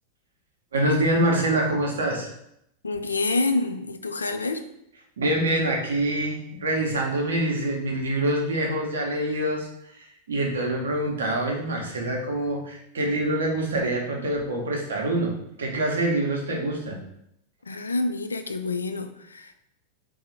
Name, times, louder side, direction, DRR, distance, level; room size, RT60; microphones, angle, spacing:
voice 1, 0.7-2.3 5.2-9.7 9.9-17.0, right 1 dB, 65° right, 0 dB, 0.9 m, -25 dB
voice 2, 2.8-4.6 17.6-19.6, left 3 dB, 75° left, 8 dB, 0.3 m, -27 dB
3.7 x 2.3 x 4.4 m, 0.77 s
figure-of-eight pair, 90°, 0 cm